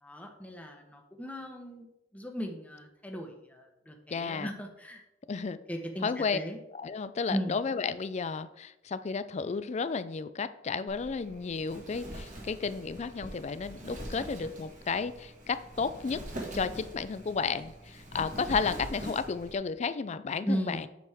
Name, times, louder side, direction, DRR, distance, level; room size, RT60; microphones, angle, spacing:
voice 1, 0.0-1.9 2.1-5.0 5.7-6.6 7.3-7.6 20.4-20.8, equal, 10° left, 3 dB, 0.9 m, -37 dB
voice 2, 4.1-4.5 5.3-5.6 6.0-6.4 6.7-16.2 16.5-20.9, left 5 dB, 35° left, 14 dB, 0.4 m, -33 dB
Wind, 10.9-19.5, right 1 dB, 40° right, 1.7 m, -43 dB
8.3 x 6.2 x 3.5 m, 0.89 s
head